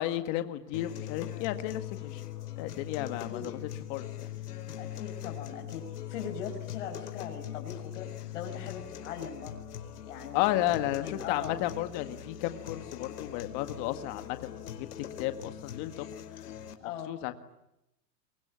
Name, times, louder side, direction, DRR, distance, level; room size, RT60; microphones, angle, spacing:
voice 1, 0.0-2.2 2.6-3.6 3.9-4.3 10.3-14.9 15.2-16.1 16.8-17.3, left 14 dB, 30° left, 9 dB, 1.8 m, -33 dB
sound 1, 0.7-16.7, left 11 dB, 70° left, 4.6 m, -41 dB
voice 2, 3.1-3.5 4.8-5.8 6.1-9.6 10.1-11.6 16.8-17.2, left 7 dB, 50° left, 2 dB, 5.3 m, -40 dB
29.0 x 23.5 x 8.7 m, 0.86 s
supercardioid pair, 170°, 47 cm